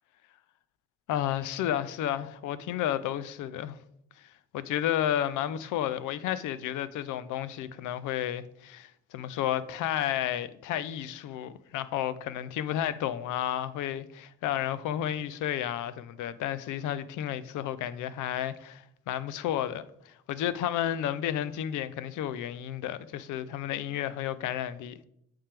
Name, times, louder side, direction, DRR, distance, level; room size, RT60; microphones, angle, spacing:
voice 1, 1.1-3.8 4.2-4.3 4.5-25.1, left 11 dB, 80° left, 0.5 m, -32 dB
8.6 x 3.4 x 3.3 m
cardioid pair, 90°, 30 cm